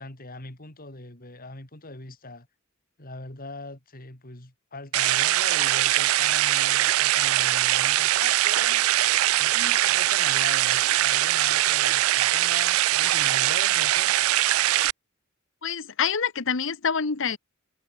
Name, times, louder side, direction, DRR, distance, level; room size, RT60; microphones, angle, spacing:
voice 1, 0.0-2.5 3.0-8.9 9.4-14.1, left 2 dB, 45° left, 3.9 m, -41 dB
sound 1, 4.9-14.9, right 15 dB, 80° right, 0.4 m, -22 dB
voice 2, 15.6-17.4, left 6 dB, 65° left, 1.1 m, -26 dB
head